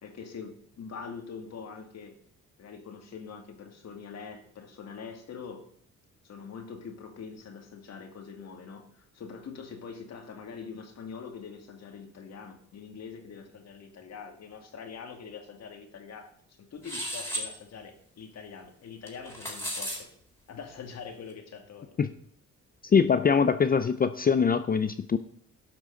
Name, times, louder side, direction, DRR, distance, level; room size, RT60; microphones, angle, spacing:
voice 1, 0.0-2.1 2.6-5.6 6.2-20.1 20.5-22.0, left 6 dB, 60° left, 4 dB, 2.2 m, -44 dB
sound 1, 16.8-17.5 19.1-20.0, equal, 10° left, 3.9 m, -34 dB
voice 2, 22.8-25.2, left 6 dB, 30° left, 12 dB, 0.5 m, -23 dB
12.0 x 6.1 x 6.4 m, 0.62 s
cardioid pair, 90°, 30 cm